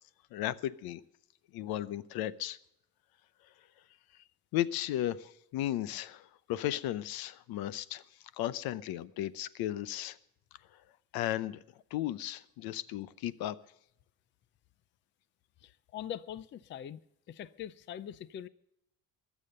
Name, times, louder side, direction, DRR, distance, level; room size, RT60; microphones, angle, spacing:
voice 1, 0.3-1.0 1.5-2.6 4.5-8.0 8.4-10.2 11.1-11.6 11.9-13.6, left 13 dB, 85° left, 0.8 m, -35 dB
voice 2, 15.6-17.0 17.3-18.5, left 10 dB, 35° left, 0.5 m, -42 dB
22.0 x 7.3 x 6.6 m
cardioid pair, 170°, 36 cm